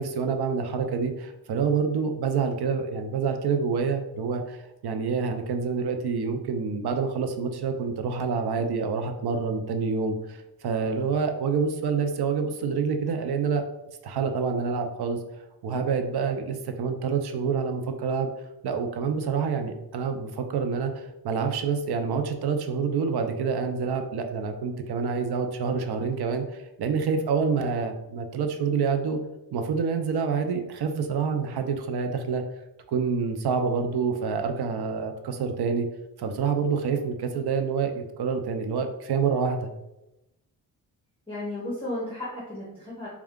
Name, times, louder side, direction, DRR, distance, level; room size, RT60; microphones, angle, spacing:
voice 1, 0.0-13.6 14.0-15.2 15.6-18.3 18.6-29.2 29.5-32.4 32.9-35.9 36.2-39.7, right 5 dB, 80° right, 6 dB, 0.6 m, -27 dB
voice 2, 41.3-43.1, left 1 dB, 15° left, -6 dB, 0.9 m, -34 dB
4.2 x 2.4 x 3.6 m, 0.94 s
wide cardioid pair, 140°, 38 cm